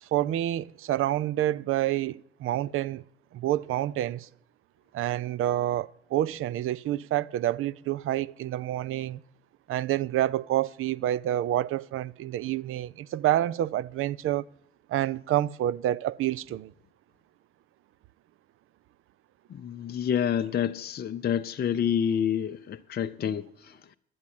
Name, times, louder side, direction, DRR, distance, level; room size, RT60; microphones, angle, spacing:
voice 1, 0.0-3.0 3.3-4.3 4.9-9.2 9.7-14.5 14.9-16.7, right 13 dB, 40° right, 0.5 m, -28 dB
voice 2, 19.5-24.0, left 8 dB, 30° left, 0.6 m, -28 dB
11.0 x 9.4 x 7.5 m
figure-of-eight pair, 50°, 32 cm